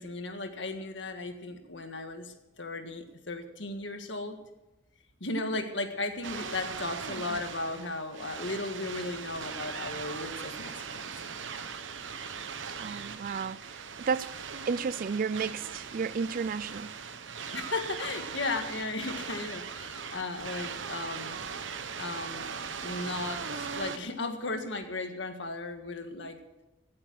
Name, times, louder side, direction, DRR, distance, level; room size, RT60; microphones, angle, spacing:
voice 1, 0.0-4.4 5.2-11.1 17.5-21.3 22.0-22.5 22.8-26.4, left 2 dB, 75° left, 1.7 m, -36 dB
sound 1, 6.2-24.0, right 6 dB, 85° right, 1.0 m, -39 dB
voice 2, 12.7-14.4 14.7-17.0, right 5 dB, 50° right, 0.4 m, -32 dB
17.0 x 8.7 x 6.3 m
head